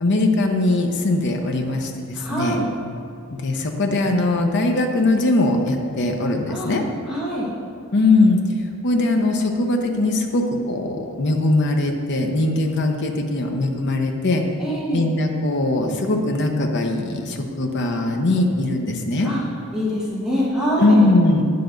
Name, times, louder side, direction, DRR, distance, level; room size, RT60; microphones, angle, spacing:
voice 1, 0.0-2.6 3.3-6.8 7.9-8.4 8.8-14.4 14.9-19.3 20.8-21.4, left 2 dB, 55° left, 3 dB, 0.9 m, -20 dB
voice 2, 2.1-2.7 6.5-6.8 7.0-7.5 14.6-15.0 19.2-19.4 19.7-21.1, equal, 5° right, -8 dB, 1.4 m, -24 dB
9.8 x 6.9 x 3.9 m, 2.4 s
head